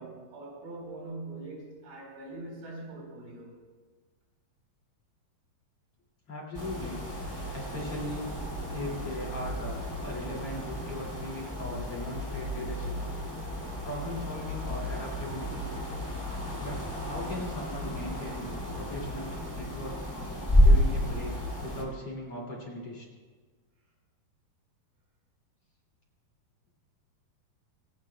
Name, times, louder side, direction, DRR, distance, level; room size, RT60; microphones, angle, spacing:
voice 1, 0.0-3.6, right 2 dB, 85° right, -2 dB, 6.2 m, -42 dB
voice 2, 6.3-7.0 7.5-8.4 8.7-12.9 13.8-15.7 16.6-20.0 20.6-23.1, left 1 dB, 40° left, -2 dB, 2.9 m, -39 dB
sound 1, 6.5-21.8, equal, 25° left, 0.5 m, -31 dB
24.5 x 16.5 x 2.2 m, 1.4 s
omnidirectional pair, 4.7 m